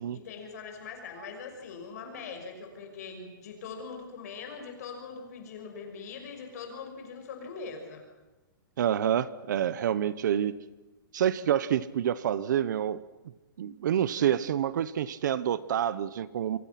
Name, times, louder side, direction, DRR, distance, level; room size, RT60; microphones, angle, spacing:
voice 1, 0.1-8.0, left 5 dB, 50° left, 4 dB, 5.9 m, -42 dB
voice 2, 8.8-10.5 11.1-13.0 13.6-16.6, right 10 dB, 55° right, 17 dB, 1.0 m, -27 dB
29.0 x 25.5 x 6.0 m, 1.1 s
hypercardioid pair, 175°, 12 cm